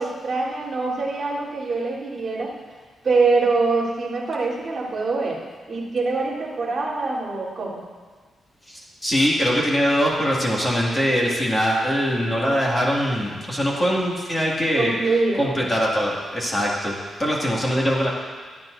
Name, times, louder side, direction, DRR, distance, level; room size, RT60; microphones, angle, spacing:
voice 1, 0.0-2.5 3.0-5.4 5.7-7.8 14.8-15.6, right 3 dB, 30° right, -9 dB, 3.6 m, -24 dB
voice 2, 8.7-14.9 15.4-18.1, equal, 15° left, -4 dB, 2.2 m, -22 dB
25.5 x 9.1 x 2.7 m, 1.5 s
wide cardioid pair, 165°, 0 cm